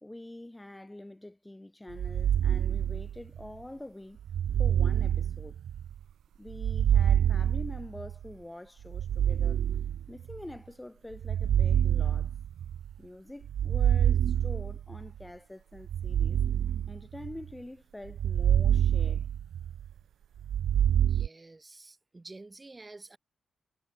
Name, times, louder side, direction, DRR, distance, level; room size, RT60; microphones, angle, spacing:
voice 1, 0.0-4.2 4.6-5.6 6.4-9.6 10.1-12.3 13.0-16.4 16.9-19.3, left 1 dB, 10° left, 1.4 m, -45 dB
sound 1, 1.9-3.5 4.3-6.0 6.5-8.3 8.9-10.4 11.1-12.9 13.5-15.1 15.8-17.5 18.1-19.9 20.4-21.3, right 9 dB, 80° right, 0.3 m, -27 dB
voice 2, 21.0-23.2, right 2 dB, 20° right, 2.1 m, -49 dB
wide cardioid pair, 140°, 0 cm